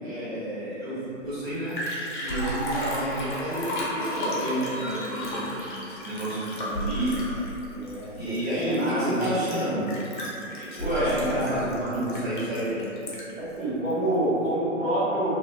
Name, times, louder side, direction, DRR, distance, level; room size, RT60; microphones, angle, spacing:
voice 1, 0.0-1.8 2.2-7.4 8.1-9.9 10.6-12.8, right 1 dB, 55° right, -11 dB, 1.4 m, -30 dB
Liquid, 1.2-1.3 1.5-13.4 13.9-14.0, equal, 40° left, 0.5 m, -33 dB
sound 1, 4.7-6.1, left 1 dB, 30° right, 0.5 m, -47 dB
voice 2, 7.7-9.3 10.8-11.7 13.4-15.3, right 1 dB, 80° right, -13 dB, 0.9 m, -27 dB
2.5 x 2.4 x 2.3 m, 2.9 s
figure-of-eight pair, 125°, 38 cm